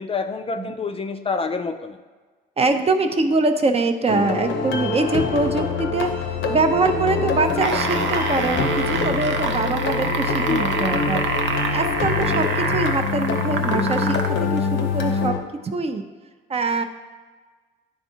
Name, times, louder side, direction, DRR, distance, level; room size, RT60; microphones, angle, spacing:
voice 1, 0.0-2.0 10.5-10.8, left 4 dB, 30° left, 7 dB, 0.4 m, -27 dB
voice 2, 2.6-11.3 11.7-15.4 15.6-16.0 16.5-16.8, right 3 dB, 30° right, 7 dB, 0.5 m, -23 dB
sound 1, 4.1-15.4, left 4 dB, 70° left, 0.7 m, -25 dB
sound 2, 7.5-14.4 15.2-15.3, right 5 dB, 75° right, 0.6 m, -26 dB
10.0 x 3.5 x 2.8 m, 1.4 s
cardioid pair, 90°, 20 cm